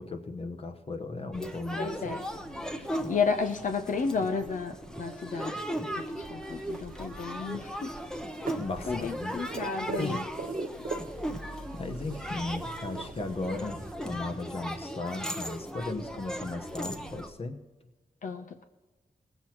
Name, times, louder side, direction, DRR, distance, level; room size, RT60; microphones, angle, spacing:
voice 1, 0.0-2.2 8.5-9.4 10.0-10.3 11.5-17.6, left 3 dB, 45° left, 7 dB, 1.1 m, -36 dB
sound 1, 1.3-17.3, equal, 5° left, 0.8 m, -37 dB
voice 2, 1.8-2.2 3.1-5.5 5.9-6.0 6.3-7.9 8.9-10.2 18.2-18.7, left 5 dB, 70° left, 6 dB, 0.8 m, -32 dB
sound 2, 6.4-13.9, right 5 dB, 85° right, 1.2 m, -43 dB
20.0 x 8.1 x 4.5 m, 1.2 s
wide cardioid pair, 170°, 14 cm